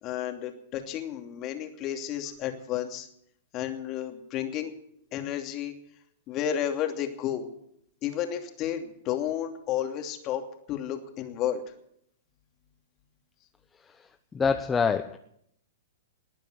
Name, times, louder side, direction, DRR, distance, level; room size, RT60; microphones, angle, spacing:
voice 1, 0.0-3.1 3.5-4.7 5.1-5.7 6.3-7.5 8.0-10.4 10.7-11.6, left 10 dB, 35° left, 4 dB, 2.7 m, -32 dB
voice 2, 13.8-15.2, left 5 dB, 15° left, 8 dB, 0.8 m, -27 dB
20.0 x 9.0 x 8.0 m, 0.73 s
hypercardioid pair, 110°, 0 cm